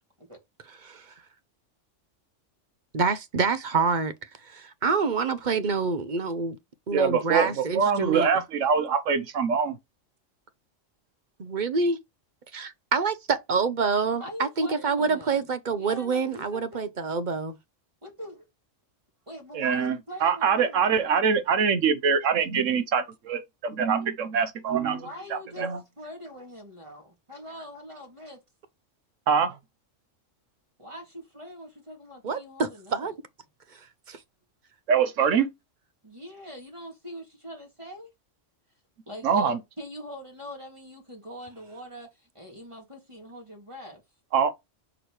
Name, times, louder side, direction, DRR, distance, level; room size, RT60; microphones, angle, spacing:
voice 1, 0.8-1.1 2.9-4.1 4.4-6.6 6.9-8.3 11.4-12.0 12.5-17.6 32.2-33.1 34.1-34.2, right 4 dB, 45° right, 0.8 m, -27 dB
voice 2, 6.9-9.8 19.5-25.8 29.3-29.6 34.9-35.5 39.2-39.6 44.3-44.5, right 6 dB, 80° right, 1.2 m, -24 dB
voice 3, 14.2-16.9 17.3-17.4 18.0-18.5 19.3-21.1 24.9-25.7 26.0-28.4 30.8-33.1 36.0-38.1 39.1-44.0, equal, 25° right, 2.4 m, -43 dB
6.3 x 4.9 x 3.1 m
omnidirectional pair, 1.3 m